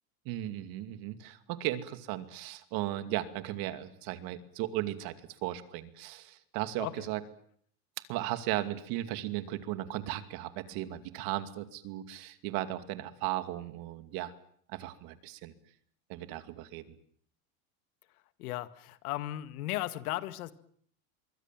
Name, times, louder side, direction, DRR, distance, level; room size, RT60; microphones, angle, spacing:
voice 1, 0.3-5.1 5.4-7.2 8.1-14.3 14.7-15.5 16.1-16.8, right 15 dB, 55° right, 10 dB, 2.6 m, -36 dB
voice 2, 18.1-20.5, left 15 dB, 80° left, 12 dB, 1.9 m, -36 dB
26.0 x 23.5 x 7.6 m, 0.63 s
supercardioid pair, 145°, 43 cm